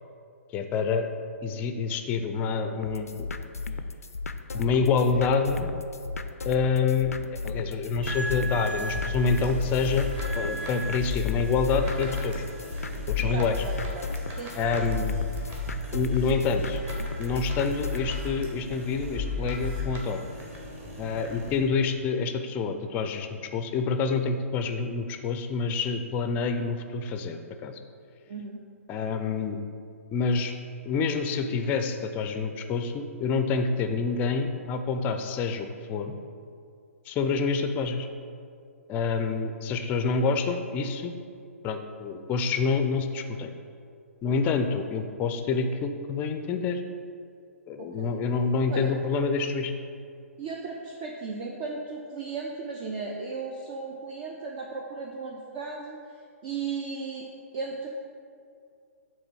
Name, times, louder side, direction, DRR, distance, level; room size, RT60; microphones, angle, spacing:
voice 1, 0.5-1.1 1.4-3.3 4.5-5.7 6.4-10.1 10.3-12.4 13.1-13.6 14.6-15.2 15.9-16.8 17.2-20.3 21.0-27.8 28.9-29.6 30.1-30.5 30.8-36.1 37.1-38.1 38.9-41.1 41.6-43.5 44.2-46.8 47.7-49.7, left 4 dB, 20° left, 7 dB, 0.5 m, -27 dB
sound 1, 2.8-18.1, left 3 dB, 80° left, 0.4 m, -36 dB
sound 2, 8.0-21.6, left 2 dB, 20° right, 1.3 m, -34 dB
voice 2, 13.2-14.0 14.4-15.0 28.3-28.6 47.8-48.2 48.7-48.9 50.4-56.0 56.4-57.3 57.5-57.9, right 4 dB, 40° right, 0 dB, 0.6 m, -36 dB
7.9 x 3.2 x 6.1 m, 2.3 s
figure-of-eight pair, 125°, 8 cm